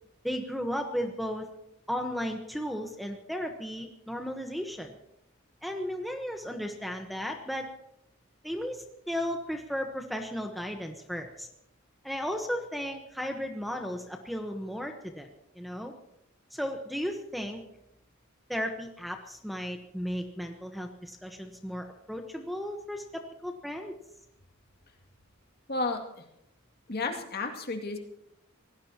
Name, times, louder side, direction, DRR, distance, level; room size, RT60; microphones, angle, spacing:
voice 1, 0.2-1.5 1.9-4.9 5.6-7.7 8.4-11.5 12.0-15.3 15.6-15.9 16.5-17.6 18.5-23.9, equal, ahead, 4 dB, 1.1 m, -35 dB
voice 2, 25.7-26.2 26.9-28.0, left 3 dB, 50° left, 3 dB, 2.3 m, -32 dB
25.5 x 17.5 x 2.9 m, 0.82 s
head